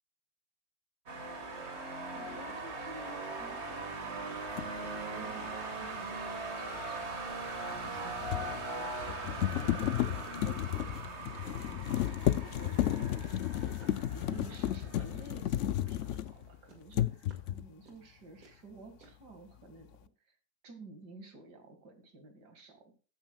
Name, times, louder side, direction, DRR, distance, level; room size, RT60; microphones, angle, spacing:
sound 1, 1.1-15.9, right 3 dB, 40° right, 1.9 m, -40 dB
voice 1, 2.1-7.1 7.7-11.0 11.5-13.5 14.1-20.4 20.6-22.9, right 2 dB, 80° right, 6 dB, 2.7 m, -53 dB
sound 2, 2.5-5.2 5.5-9.3 9.7-11.2 11.5-16.3 16.6-19.1, right 4 dB, 60° right, 2.7 m, -58 dB
sound 3, 4.6-4.7 7.8-16.6 16.9-17.7, left 12 dB, 70° left, 0.7 m, -33 dB
14.0 x 8.9 x 2.3 m, 0.38 s
omnidirectional pair, 1.7 m